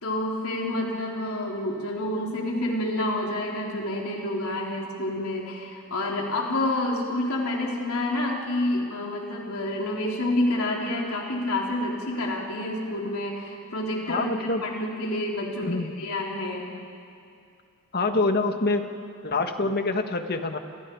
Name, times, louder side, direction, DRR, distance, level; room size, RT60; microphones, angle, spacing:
voice 1, 0.0-16.7, left 1 dB, 85° left, -2 dB, 3.7 m, -28 dB
voice 2, 14.1-14.6 15.6-15.9 17.9-18.8 19.2-20.6, left 3 dB, 50° left, 6 dB, 1.6 m, -25 dB
29.5 x 29.0 x 4.7 m, 2.4 s
head